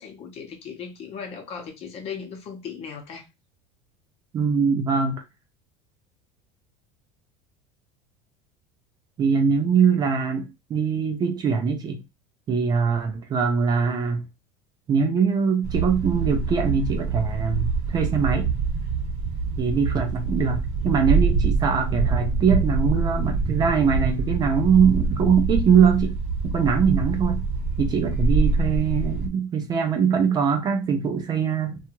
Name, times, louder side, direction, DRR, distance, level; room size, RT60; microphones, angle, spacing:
voice 1, 0.0-3.3, left 6 dB, 40° left, 0.8 m, -37 dB
voice 2, 4.3-5.2 9.2-12.0 12.5-14.3 14.9-18.5 19.6-26.1 26.4-27.4 27.8-31.8, right 6 dB, 25° right, 0.4 m, -22 dB
sound 1, 15.6-29.3, right 4 dB, 45° right, 0.9 m, -25 dB
2.7 x 2.3 x 2.8 m
cardioid pair, 145°, 16 cm